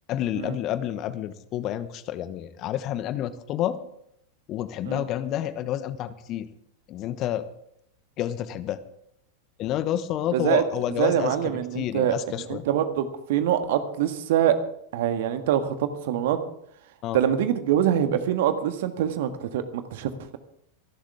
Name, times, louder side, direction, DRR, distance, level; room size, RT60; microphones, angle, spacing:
voice 1, 0.1-3.8 4.5-6.5 6.9-7.5 8.2-8.8 9.6-11.4 11.7-12.6 17.0-17.2, left 11 dB, 35° left, 13 dB, 1.1 m, -29 dB
voice 2, 10.3-10.6 11.0-12.1 12.5-14.6 14.9-16.4 17.1-20.4, right 10 dB, 55° right, 8 dB, 1.7 m, -24 dB
26.0 x 11.5 x 3.6 m, 0.72 s
figure-of-eight pair, 90°, 0 cm